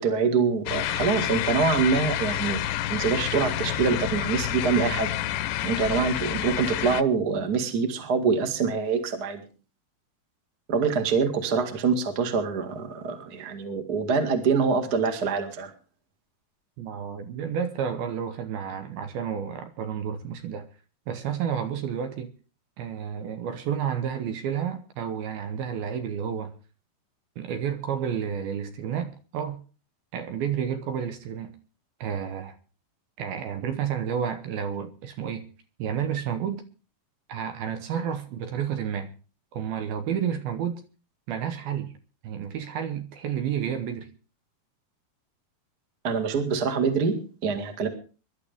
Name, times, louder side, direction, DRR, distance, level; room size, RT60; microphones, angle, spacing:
voice 1, 0.0-2.6 2.9-5.1 5.6-9.4 10.7-15.7 46.0-47.9, right 5 dB, 40° right, 1.5 m, -25 dB
sound 1, 0.7-7.0, left 12 dB, 85° left, 3.0 m, -29 dB
voice 2, 16.8-20.7 21.1-22.3 22.8-26.6 27.4-29.6 30.1-31.6 32.0-32.6 33.2-35.5 35.8-36.7 37.3-39.1 39.5-40.8 41.3-41.9 42.2-44.1, right 8 dB, 70° right, 2.6 m, -31 dB
23.0 x 11.5 x 3.5 m
omnidirectional pair, 4.8 m